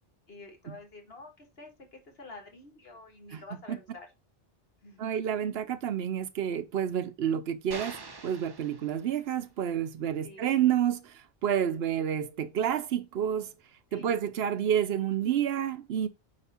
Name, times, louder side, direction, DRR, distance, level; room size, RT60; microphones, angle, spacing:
voice 1, 0.3-4.1 4.8-5.1 10.2-10.5 13.9-14.3, left 2 dB, 75° left, 2.0 m, -48 dB
voice 2, 5.0-8.0 8.2-13.5 13.9-16.1, right 9 dB, 80° right, 0.9 m, -29 dB
sound 1, 7.7-9.4, right 3 dB, 25° right, 0.7 m, -45 dB
9.2 x 3.4 x 4.2 m
omnidirectional pair, 1.0 m